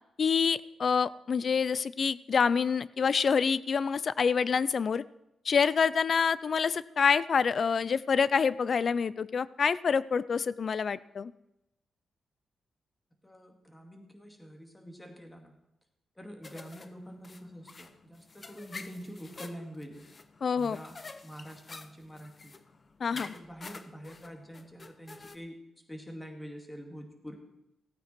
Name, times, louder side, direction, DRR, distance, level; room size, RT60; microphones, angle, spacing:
voice 1, 0.2-5.0 5.5-11.3 20.4-20.8 23.0-23.3, left 6 dB, 55° left, 19 dB, 0.4 m, -27 dB
voice 2, 13.2-15.6 16.2-20.1 20.6-21.0 21.2-22.6 23.1-25.6 25.9-27.4, equal, 10° left, 4 dB, 2.2 m, -46 dB
sound 1, 16.4-25.4, left 3 dB, 35° left, 0.7 m, -48 dB
15.5 x 9.0 x 4.5 m, 0.90 s
cardioid pair, 80°, 0 cm